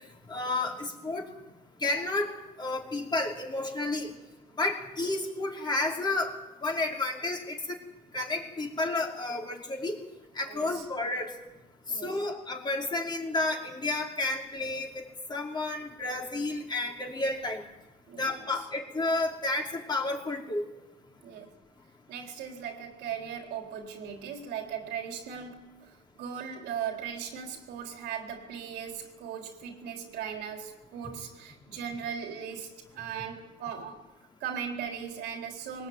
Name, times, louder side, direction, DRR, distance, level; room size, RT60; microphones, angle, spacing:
voice 1, 0.3-1.3 1.8-2.3 2.6-4.1 4.6-6.3 6.6-7.8 8.1-10.0 10.4-11.3 12.0-15.0 15.3-17.6 18.2-20.6, left 2 dB, 25° left, 5.3 m, -31 dB
voice 2, 10.5-10.9 11.9-12.2 18.1-18.5 21.2-21.5 22.1-34.1 34.4-35.9, right 8 dB, 80° right, 3.9 m, -38 dB
22.5 x 19.0 x 9.7 m
cardioid pair, 110°, 17 cm